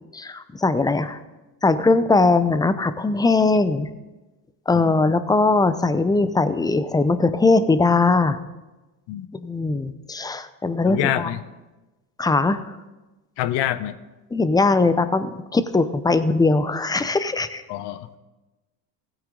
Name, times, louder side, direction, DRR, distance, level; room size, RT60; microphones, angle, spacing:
voice 1, 0.1-1.2 1.6-3.9 4.7-8.4 9.4-11.3 12.2-12.6 14.3-17.6, left 3 dB, 10° left, 12 dB, 0.6 m, -20 dB
voice 2, 10.9-11.4 13.4-14.0 17.7-18.2, left 13 dB, 60° left, 14 dB, 0.9 m, -26 dB
16.5 x 8.9 x 3.8 m, 1.1 s
supercardioid pair, 95°, 46 cm